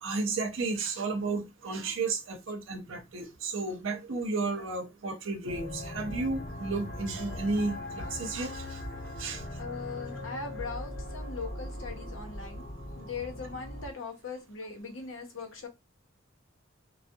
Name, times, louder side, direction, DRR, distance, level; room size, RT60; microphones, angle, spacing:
voice 1, 0.0-8.8 9.2-9.4, right 3 dB, 80° right, 0.7 m, -33 dB
sound 1, 5.5-13.9, left 1 dB, 55° left, 0.8 m, -40 dB
voice 2, 9.6-12.6 13.0-15.7, left 4 dB, 85° left, 0.7 m, -40 dB
2.6 x 2.1 x 2.2 m
head